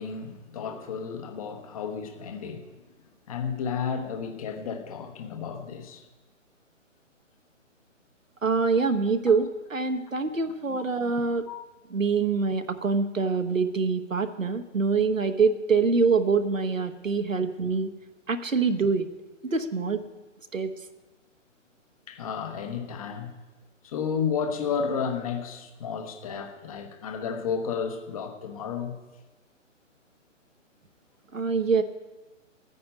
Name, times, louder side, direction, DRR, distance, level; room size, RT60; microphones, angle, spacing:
voice 1, 0.0-2.8 3.3-6.0 11.5-11.6 17.4-17.5 22.1-23.3 23.8-28.9, left 6 dB, 30° left, 6 dB, 1.1 m, -32 dB
voice 2, 8.4-11.5 11.9-17.9 18.3-19.1 19.4-20.0 20.5-20.7 31.3-31.8, right 4 dB, 80° right, 7 dB, 1.1 m, -25 dB
14.0 x 9.5 x 5.2 m, 1.1 s
figure-of-eight pair, 135°, 38 cm